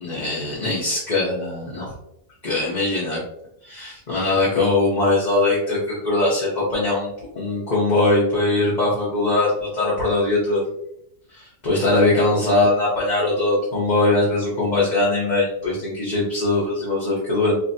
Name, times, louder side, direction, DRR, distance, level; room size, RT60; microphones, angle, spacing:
voice 1, 0.0-1.9 2.4-3.2 3.6-7.1 7.3-10.6 11.3-17.6, left 2 dB, 40° left, -6 dB, 1.0 m, -21 dB
5.4 x 2.1 x 2.7 m, 0.78 s
omnidirectional pair, 1.3 m